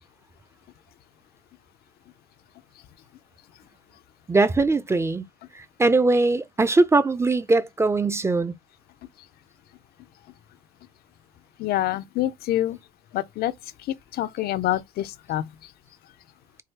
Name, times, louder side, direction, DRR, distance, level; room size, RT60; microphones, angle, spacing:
voice 1, 4.3-5.2 5.5-8.5, right 3 dB, 15° right, 0.5 m, -21 dB
voice 2, 11.6-12.8 13.1-13.5 13.8-15.7, left 14 dB, 70° left, 0.5 m, -27 dB
4.6 x 2.3 x 4.6 m
cardioid pair, 110°, 17 cm